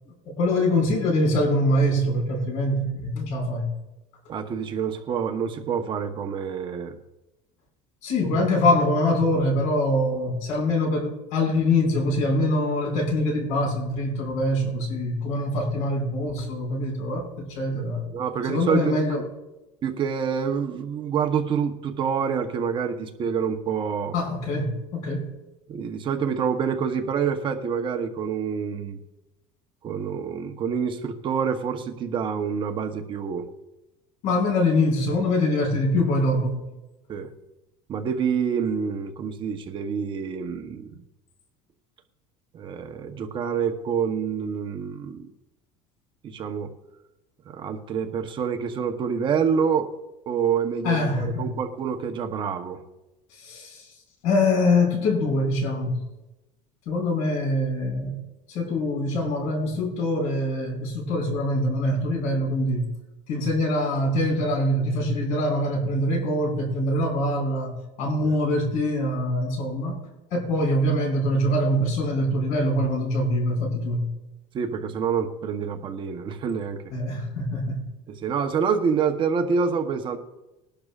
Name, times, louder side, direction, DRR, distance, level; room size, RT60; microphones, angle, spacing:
voice 1, 0.3-3.7 8.0-18.1 18.5-19.2 24.1-25.3 34.2-36.7 50.8-51.5 53.3-53.9 54.2-56.0 56.9-58.2 58.5-62.9 63.3-70.0 70.3-74.1 76.9-77.8, left 1 dB, 70° left, 1 dB, 5.5 m, -24 dB
voice 2, 4.3-7.0 8.2-8.4 18.1-19.2 19.8-24.1 25.7-29.0 29.8-33.5 37.1-37.3 37.9-41.0 42.5-45.3 46.2-46.7 47.5-49.9 50.3-52.8 68.2-68.4 74.5-76.8 78.1-80.2, right 6 dB, 35° right, 5 dB, 1.0 m, -27 dB
21.0 x 11.5 x 2.5 m, 0.99 s
cardioid pair, 145°, 14 cm